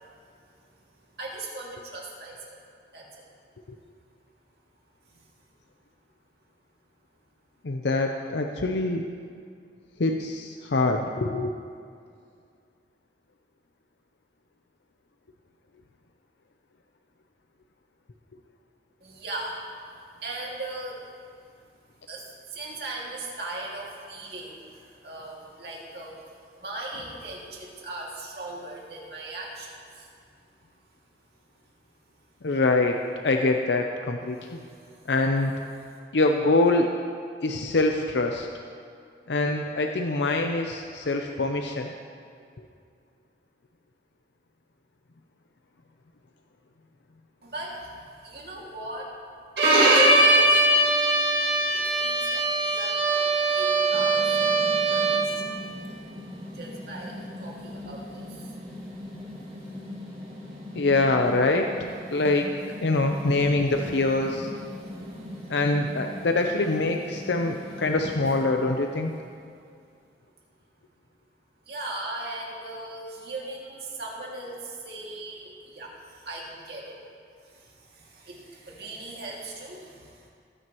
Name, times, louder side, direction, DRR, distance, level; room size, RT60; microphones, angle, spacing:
voice 1, 1.2-2.6 2.9-3.2 5.1-5.2 19.0-19.6 20.2-21.0 22.1-30.1 34.4-35.1 47.4-49.1 49.7-55.7 56.5-58.5 58.8-59.7 60.5-60.6 71.7-77.1 77.4-80.3, right 2 dB, 65° right, -3 dB, 2.2 m, -39 dB
voice 2, 7.6-9.0 10.0-11.5 32.4-34.6 35.1-35.5 36.1-36.9 37.4-38.5 39.3-41.9 60.7-61.7 62.1-62.5 62.8-64.5 65.5-69.1, left 2 dB, 85° left, 3 dB, 0.6 m, -24 dB
Bowed string instrument, 49.6-55.4, right 2 dB, 85° right, 1.9 m, -21 dB
sound 1, 53.9-69.3, left 1 dB, 35° right, 3.1 m, -40 dB
20.0 x 9.3 x 3.0 m, 2.3 s
head